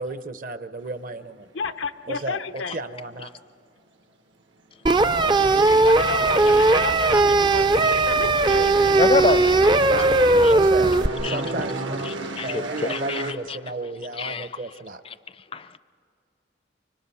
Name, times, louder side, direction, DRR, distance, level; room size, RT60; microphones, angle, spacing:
voice 1, 0.0-1.5 2.1-3.3 5.2-5.9 6.2-6.9 9.9-10.1 10.5-10.9 11.2-12.0 12.4-15.0, right 2 dB, 45° right, 0.8 m, -34 dB
voice 2, 1.5-2.8 5.8-8.8 9.4-9.7, left 5 dB, 90° left, 0.7 m, -32 dB
sound 1, 4.9-11.1, right 2 dB, 25° right, 0.4 m, -18 dB
sound 2, 6.0-13.3, right 2 dB, 80° right, 1.5 m, -34 dB
voice 3, 9.0-9.5 10.4-10.5 11.2-11.4 12.1-13.6 14.2-14.5 15.5-15.8, left 3 dB, 30° left, 0.5 m, -26 dB
25.0 x 25.0 x 5.6 m
head